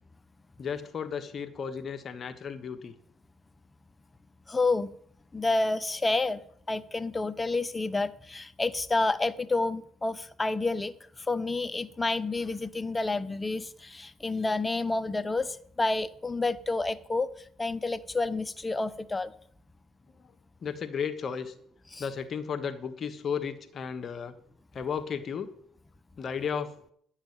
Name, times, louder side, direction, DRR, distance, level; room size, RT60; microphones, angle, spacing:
voice 1, 0.6-2.9 20.1-20.3 20.6-21.5 22.0-24.3 24.7-25.5 26.2-26.7, left 6 dB, 45° left, 8 dB, 1.3 m, -34 dB
voice 2, 4.5-4.9 5.3-6.4 6.7-10.9 11.3-17.3 17.6-19.3 21.9-22.0, left 3 dB, 20° left, 15 dB, 0.8 m, -29 dB
10.5 x 7.4 x 9.0 m, 0.64 s
supercardioid pair, 75°, 0 cm